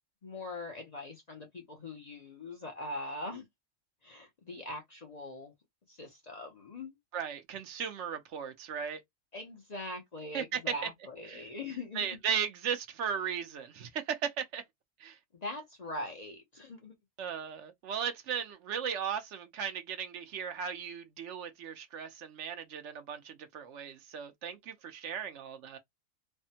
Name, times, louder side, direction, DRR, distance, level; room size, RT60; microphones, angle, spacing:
voice 1, 0.2-3.5 4.0-5.5 5.9-7.0 9.3-12.2 15.4-16.9, left 2 dB, 45° left, 0.6 m, -42 dB
voice 2, 7.1-9.0 10.3-10.6 11.3-11.4 11.9-14.6 15.0-15.2 17.2-25.8, right 7 dB, 70° right, 0.9 m, -36 dB
3.3 x 2.1 x 2.7 m
omnidirectional pair, 1.3 m